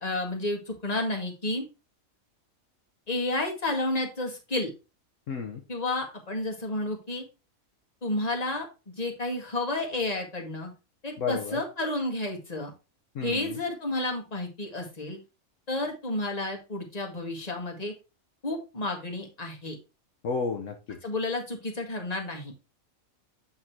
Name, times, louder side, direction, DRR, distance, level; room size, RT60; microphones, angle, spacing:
voice 1, 0.0-1.6 3.1-4.7 5.7-7.2 8.0-8.7 9.0-10.7 11.0-12.7 13.2-15.2 15.7-17.9 18.4-19.8 21.0-22.5, left 2 dB, 30° left, 1.9 m, -31 dB
voice 2, 5.3-5.6 11.2-11.6 13.1-13.6 20.2-21.0, left 5 dB, 65° left, 1.3 m, -32 dB
8.6 x 3.8 x 4.5 m
omnidirectional pair, 1.4 m